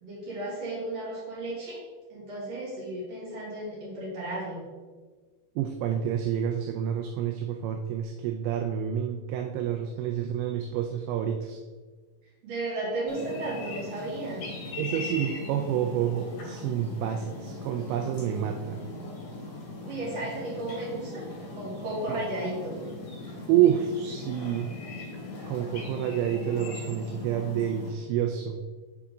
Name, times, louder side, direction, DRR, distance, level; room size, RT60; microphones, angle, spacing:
voice 1, 0.0-1.8 2.1-4.7 12.4-14.4 19.8-21.2 21.5-22.8, right 2 dB, 55° right, -7 dB, 1.8 m, -34 dB
voice 2, 5.6-11.6 14.8-18.8 22.1-22.2 23.5-24.7 25.5-28.6, right 10 dB, 85° right, 4 dB, 2.8 m, -28 dB
sound 1, 13.1-27.9, left 2 dB, 55° left, 2.8 m, -39 dB
6.9 x 4.7 x 3.7 m, 1.4 s
omnidirectional pair, 5.3 m